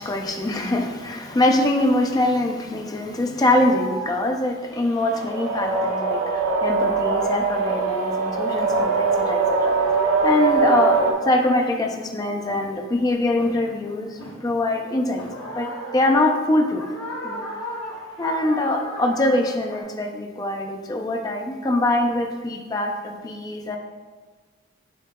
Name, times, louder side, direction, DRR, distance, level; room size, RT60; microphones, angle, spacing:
voice 1, 0.0-9.8 10.2-15.3 15.5-16.9 17.2-17.4 18.2-23.8, left 1 dB, 20° left, 3 dB, 0.3 m, -23 dB
sound 1, 1.2-1.4 2.2-2.6 3.0-3.1 3.4-6.0 6.3-7.0 7.4-8.2 8.9-9.3 10.1-10.2 10.4-12.1 12.5-12.9 13.4-14.8 15.2-19.8, left 1 dB, 70° left, 1.0 m, -37 dB
sound 2, 5.0-11.1, right 4 dB, 85° right, 0.6 m, -22 dB
6.4 x 3.7 x 2.2 m, 1.4 s
head